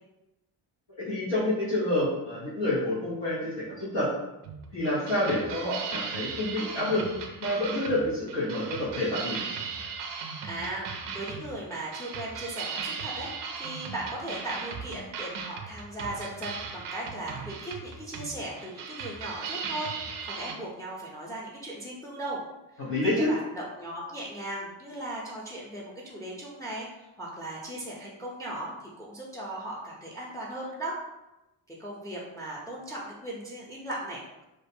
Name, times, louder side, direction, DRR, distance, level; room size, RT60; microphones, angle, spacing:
voice 1, 1.0-4.1 4.7-7.0 7.4-9.4 22.8-23.3, left 1 dB, 90° left, -9 dB, 1.0 m, -28 dB
sound 1, 4.4-20.5, right 5 dB, 70° right, 0.5 m, -38 dB
voice 2, 10.4-13.3 13.6-19.9 20.2-22.4 22.7-31.0 31.7-34.4, right 1 dB, 10° left, -4 dB, 0.4 m, -37 dB
2.5 x 2.2 x 2.6 m, 0.96 s
cardioid pair, 100°, 43 cm